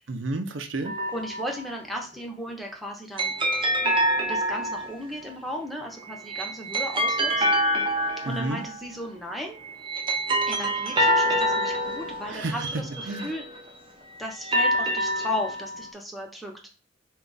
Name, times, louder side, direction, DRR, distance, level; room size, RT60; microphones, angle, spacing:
voice 1, 0.1-0.9 8.2-8.6 12.2-13.3, right 2 dB, 85° right, 7 dB, 0.6 m, -31 dB
sound 1, 0.9-1.6 3.2-5.1 6.1-8.9 9.6-13.7 14.3-15.9, equal, 25° right, 0.6 m, -26 dB
voice 2, 1.1-3.3 4.3-7.4 8.3-9.6 10.5-13.5 14.2-16.7, left 1 dB, ahead, 0 dB, 0.8 m, -35 dB
4.5 x 2.3 x 3.9 m, 0.36 s
head